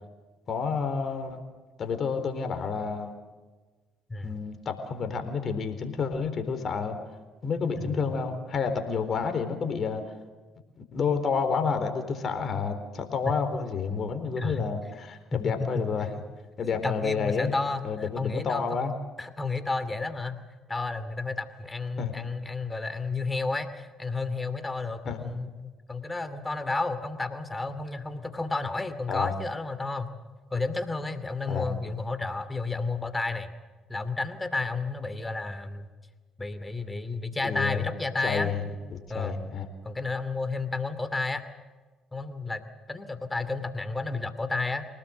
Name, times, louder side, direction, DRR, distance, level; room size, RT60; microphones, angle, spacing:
voice 1, 0.5-1.4 1.8-3.1 4.2-7.0 7.4-10.0 10.8-16.1 16.6-17.5 17.8-18.9 22.0-22.1 25.0-25.3 29.1-29.3 31.5-31.7 37.4-37.9 38.2-38.6 38.9-39.7, left 5 dB, 50° left, 7 dB, 4.1 m, -29 dB
voice 2, 14.4-15.0 15.3-15.9 16.6-18.8 19.2-20.4 20.7-30.1 30.5-33.5 33.9-35.9 36.4-38.5 39.1-39.4 39.8-41.5 42.1-42.6 42.9-44.9, left 3 dB, 20° left, 11 dB, 2.5 m, -31 dB
25.5 x 19.0 x 7.9 m, 1.3 s
hypercardioid pair, 60°, 0 cm